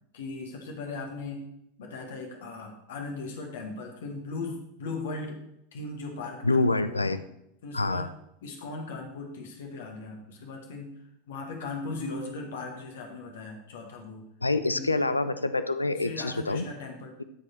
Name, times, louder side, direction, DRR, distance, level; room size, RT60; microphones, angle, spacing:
voice 1, 0.1-1.5 1.8-5.4 5.7-7.0 7.6-8.1 8.4-10.9 11.3-14.2 14.7-14.9 16.0-17.1, left 3 dB, 60° left, 2 dB, 1.6 m, -38 dB
voice 2, 6.4-7.2 7.7-8.1 14.4-16.7, left 2 dB, 80° left, 12 dB, 0.5 m, -26 dB
12.5 x 5.1 x 4.4 m, 0.79 s
figure-of-eight pair, 85°, 0 cm